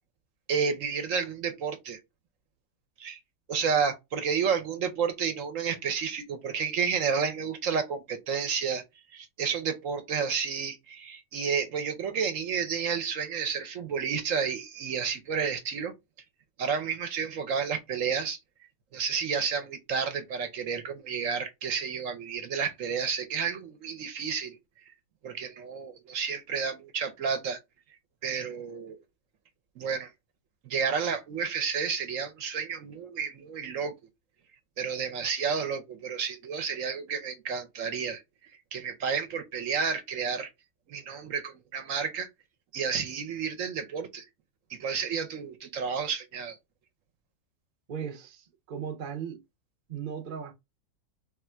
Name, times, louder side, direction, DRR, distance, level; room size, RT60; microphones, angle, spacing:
voice 1, 0.5-2.0 3.0-3.2 3.5-8.8 9.1-15.9 16.6-18.4 18.9-24.6 25.2-27.6 28.2-29.0 29.8-30.1 30.6-33.9 34.8-38.2 38.7-40.5 40.9-42.3 42.7-44.3 44.7-46.6, right 6 dB, 65° right, 1.0 m, -31 dB
voice 2, 47.9-49.4 49.9-50.5, right 7 dB, 45° right, 0.6 m, -37 dB
3.5 x 2.4 x 4.3 m
omnidirectional pair, 1.6 m